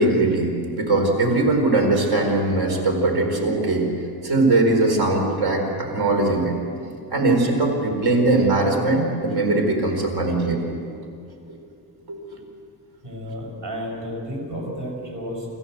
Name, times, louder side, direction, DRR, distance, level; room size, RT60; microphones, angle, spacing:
voice 1, 0.0-3.9 4.2-6.6 7.1-10.7 11.5-11.6 12.1-12.2, right 2 dB, 65° right, 2 dB, 4.6 m, -20 dB
voice 2, 13.0-15.6, equal, 50° right, -1 dB, 6.5 m, -32 dB
27.5 x 14.5 x 8.0 m, 2.4 s
cardioid pair, 180°, 40 cm